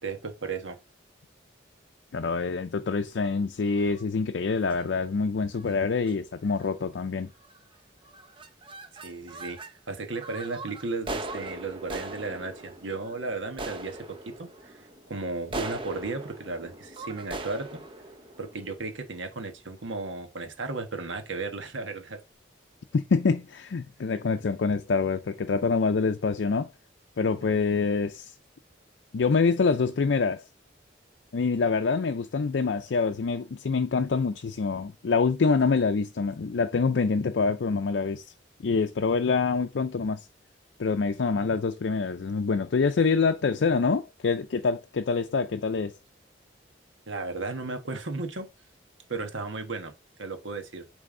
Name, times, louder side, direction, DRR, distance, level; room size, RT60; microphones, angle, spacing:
voice 1, 0.0-0.8 9.0-9.6 9.9-17.8 18.4-22.2 27.4-27.6 47.1-48.5 49.1-49.9 50.2-50.8, right 3 dB, 85° right, 1.3 m, -35 dB
voice 2, 2.1-7.3 22.9-26.7 27.2-28.3 29.1-30.4 31.3-38.3 38.6-40.3 40.8-46.0, left 4 dB, 70° left, 0.5 m, -26 dB
sound 1, 3.7-4.0 4.6-4.8 5.5-5.8 6.0-6.1 6.5-6.9 7.4-7.8 8.0-9.7 10.1-19.3, right 2 dB, 25° right, 0.7 m, -40 dB
8.7 x 3.4 x 3.7 m
head